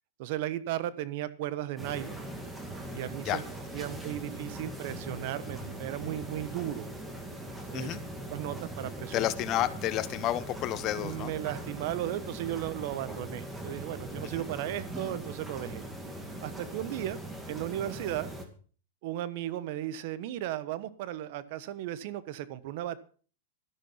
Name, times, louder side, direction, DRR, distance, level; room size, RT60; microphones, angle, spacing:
voice 1, 0.2-2.2 2.9-3.4 3.7-6.9 7.7-8.0 8.3-9.1 10.9-15.8 16.4-17.2 17.5-18.3 19.0-23.0, right 13 dB, 55° right, 16 dB, 1.1 m, -35 dB
sound 1, 1.8-18.4, right 1 dB, 10° right, 2.4 m, -41 dB
voice 2, 9.1-11.3 14.2-14.4, left 13 dB, 35° left, 14 dB, 1.1 m, -31 dB
12.5 x 11.5 x 5.7 m, 0.42 s
hypercardioid pair, 135°, 0 cm